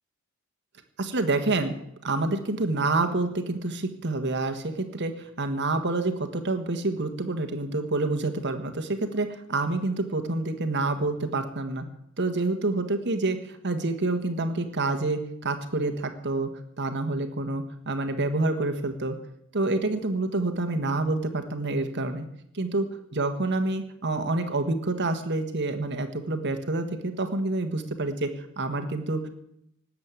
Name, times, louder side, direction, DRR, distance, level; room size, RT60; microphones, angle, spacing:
voice 1, 1.0-1.8 2.0-11.8 12.2-16.5 16.8-19.2 19.5-22.3 22.5-22.9 23.1-28.3 28.6-29.3, right 2 dB, 55° right, 7 dB, 1.5 m, -27 dB
19.0 x 7.7 x 9.0 m, 0.75 s
head